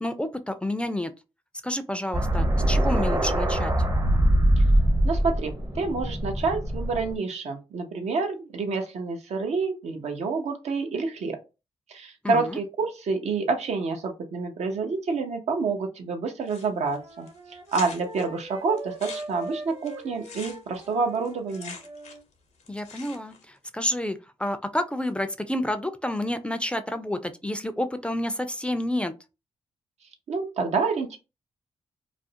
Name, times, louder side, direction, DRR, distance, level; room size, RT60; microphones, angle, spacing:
voice 1, 0.0-1.1 1.6-3.7 12.2-12.6 22.7-29.1, left 1 dB, 10° left, 0.4 m, -29 dB
sound 1, 2.1-7.1, right 1 dB, 30° right, 0.7 m, -23 dB
voice 2, 5.0-11.4 11.9-21.7 30.3-31.2, right 4 dB, 75° right, 0.6 m, -28 dB
sound 2, 16.5-17.0 17.3-17.4 17.7-18.3 18.8-22.3 22.6-23.4, left 5 dB, 80° left, 0.6 m, -43 dB
Wind instrument woodwind instrument, 16.7-22.2, right 2 dB, 50° right, 1.0 m, -41 dB
2.4 x 2.0 x 2.7 m
cardioid pair, 55°, 12 cm